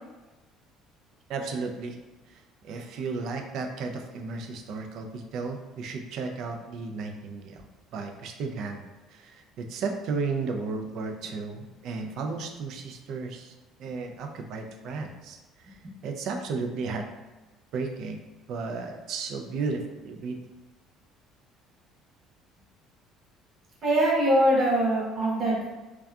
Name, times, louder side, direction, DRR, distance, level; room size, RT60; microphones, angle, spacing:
voice 1, 1.3-2.0 2.3-7.6 7.9-13.5 13.8-15.4 15.7-15.8 16.0-17.1 17.7-18.2 18.5-20.4, right 4 dB, 65° right, 4 dB, 0.3 m, -34 dB
voice 2, 23.8-25.7, right 1 dB, 45° right, -4 dB, 0.8 m, -22 dB
2.6 x 2.3 x 2.3 m, 1.1 s
cardioid pair, 115°, 0 cm